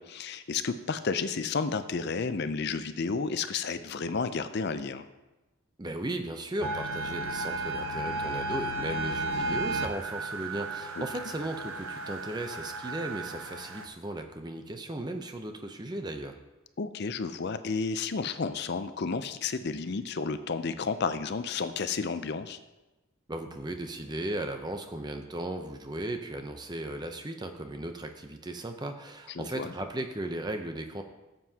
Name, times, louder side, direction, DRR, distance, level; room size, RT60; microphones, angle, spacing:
voice 1, 0.0-5.1 11.0-11.1 16.8-22.6 29.4-29.7, left 4 dB, 50° left, 11 dB, 0.5 m, -32 dB
voice 2, 5.8-16.3 23.3-31.0, right 1 dB, 20° right, 6 dB, 0.6 m, -36 dB
sound 1, 6.6-13.9, right 2 dB, 75° right, 0.7 m, -34 dB
13.5 x 7.8 x 2.9 m, 1.1 s
head